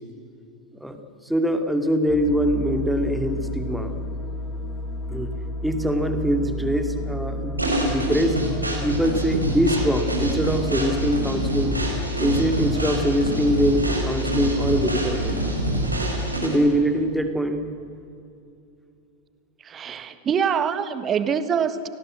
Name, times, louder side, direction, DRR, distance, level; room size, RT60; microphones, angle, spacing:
voice 1, 0.8-3.9 5.1-5.3 5.6-8.5 8.8-11.8 12.2-15.4 16.4-17.7, equal, ahead, 7 dB, 2.3 m, -23 dB
sound 1, 2.1-16.3, left 1 dB, 25° left, 5.4 m, -31 dB
sound 2, 7.6-16.7, right 1 dB, 85° right, 5.1 m, -26 dB
voice 2, 19.6-21.9, right 7 dB, 25° right, 12 dB, 1.5 m, -24 dB
29.5 x 19.0 x 7.7 m, 2.6 s
figure-of-eight pair, 90°, 0 cm